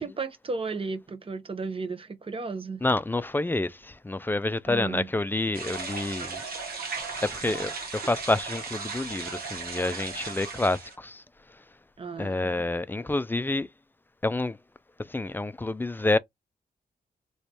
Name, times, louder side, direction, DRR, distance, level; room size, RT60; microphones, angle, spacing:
voice 1, 0.0-2.8 4.7-5.1 12.0-12.6, right 4 dB, 35° right, 0.7 m, -34 dB
voice 2, 2.8-6.4 7.2-7.7 8.0-11.2 12.2-13.7 14.2-14.6 15.1-16.2, left 2 dB, 15° left, 0.3 m, -28 dB
sound 1, 5.5-11.0, right 4 dB, 75° right, 1.1 m, -36 dB
3.2 x 3.0 x 2.8 m
cardioid pair, 75°, 16 cm